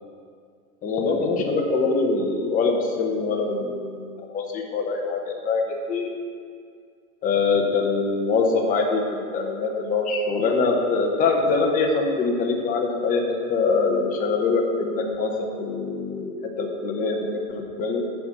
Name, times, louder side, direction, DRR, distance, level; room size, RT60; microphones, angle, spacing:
voice 1, 0.8-6.1 7.2-13.2 13.5-16.3 16.6-18.0, left 4 dB, 20° left, 0 dB, 1.1 m, -24 dB
11.0 x 4.3 x 7.3 m, 2.2 s
supercardioid pair, 150°, 43 cm